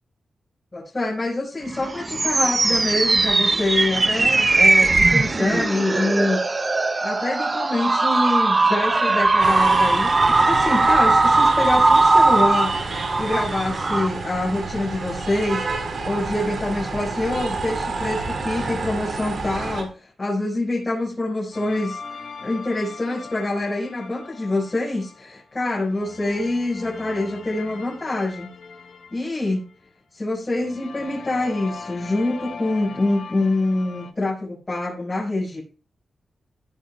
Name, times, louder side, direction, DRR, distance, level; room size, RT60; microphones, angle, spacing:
voice 1, 0.7-6.4 7.0-22.0 22.4-28.5 29.1-29.6 30.1-35.6, left 2 dB, 30° left, -5 dB, 5.3 m, -25 dB
sound 1, 1.7-14.1, right 3 dB, 30° right, 0.8 m, -19 dB
sound 2, 9.4-19.8, right 3 dB, 60° right, 4.1 m, -29 dB
sound 3, 21.5-25.4 25.8-29.9 30.5-34.1, left 5 dB, 75° left, 1.3 m, -40 dB
15.5 x 9.8 x 2.4 m, 0.36 s
wide cardioid pair, 110°, 0 cm